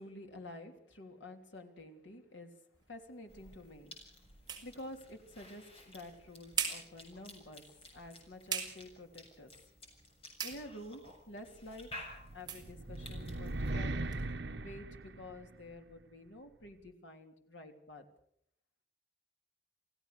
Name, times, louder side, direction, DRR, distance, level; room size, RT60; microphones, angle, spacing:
voice 1, 0.0-2.5 2.9-3.9 4.6-7.6 7.9-9.5 10.4-11.9 12.3-14.1 14.6-18.1, left 1 dB, 80° left, 4 dB, 3.3 m, -50 dB
sound 1, 2.7-14.3, right 7 dB, 25° right, 4.9 m, -45 dB
Cough / Chewing mastication, 3.3-13.7, left 1 dB, 30° left, 6.8 m, -54 dB
sound 2, 12.2-15.7, right 2 dB, 70° right, 1.3 m, -39 dB
28.0 x 16.5 x 6.8 m, 0.70 s
head